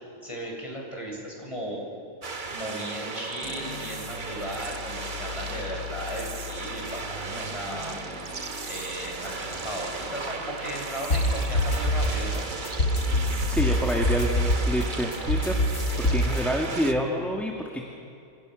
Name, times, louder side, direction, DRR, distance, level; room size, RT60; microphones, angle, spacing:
voice 1, 0.0-1.8 2.5-8.0 8.7-12.5, equal, 20° left, -1 dB, 7.2 m, -36 dB
sound 1, 2.2-16.9, right 4 dB, 30° right, 1.3 m, -36 dB
sound 2, 3.4-13.4, left 6 dB, 50° right, 6.5 m, -43 dB
sound 3, 11.1-16.4, left 1 dB, 55° left, 2.7 m, -25 dB
voice 2, 13.5-15.5 16.0-17.8, equal, ahead, 0 dB, 2.2 m, -28 dB
28.5 x 28.0 x 6.6 m, 2.6 s
omnidirectional pair, 1.7 m